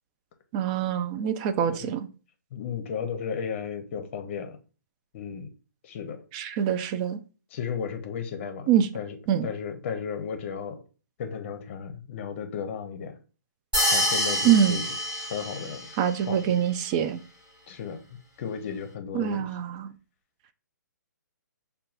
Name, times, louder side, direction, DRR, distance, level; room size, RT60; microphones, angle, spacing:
voice 1, 0.5-2.1 6.3-7.2 8.7-8.9 9.3-9.5 14.4-14.8 16.0-17.2 19.1-19.9, right 9 dB, 25° right, 0.3 m, -24 dB
voice 2, 2.5-4.6 5.1-5.5 5.8-6.2 7.5-8.7 8.9-9.2 9.4-10.8 11.2-13.2 13.9-14.9 15.3-15.9 16.3-16.5 17.7-19.5, left 7 dB, 40° left, 0.7 m, -34 dB
sound 1, 13.7-16.0, left 1 dB, 10° right, 1.1 m, -26 dB
6.4 x 2.3 x 2.4 m
figure-of-eight pair, 130°, 10 cm